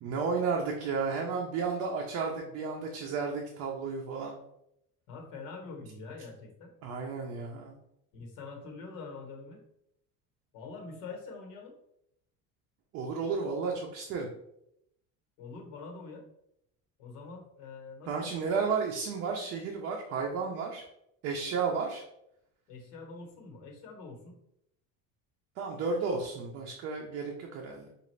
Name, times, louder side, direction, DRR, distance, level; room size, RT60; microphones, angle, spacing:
voice 1, 0.0-4.4 6.8-7.8 12.9-14.3 18.1-20.8 21.2-22.0 25.6-27.9, right 5 dB, 45° right, 0 dB, 0.6 m, -33 dB
voice 2, 5.1-6.7 8.1-9.6 10.5-11.8 15.4-16.2 17.0-18.3 22.7-24.4, left 4 dB, 75° left, 3 dB, 1.2 m, -45 dB
5.0 x 2.5 x 3.2 m, 0.78 s
cardioid pair, 165°, 34 cm